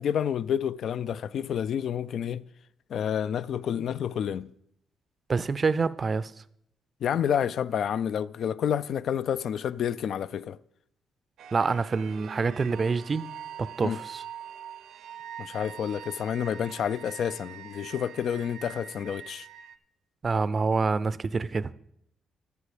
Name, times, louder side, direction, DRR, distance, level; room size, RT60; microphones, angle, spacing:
voice 1, 0.0-2.5 2.9-4.5 7.0-10.6 13.8-14.0 15.4-19.5, left 8 dB, 65° left, 0.3 m, -29 dB
voice 2, 5.3-6.3 11.5-13.3 13.6-14.2 20.2-21.7, right 4 dB, 35° right, 0.5 m, -26 dB
sound 1, 11.4-19.8, right 9 dB, 75° right, 0.6 m, -44 dB
12.5 x 6.9 x 5.0 m
cardioid pair, 90°, 0 cm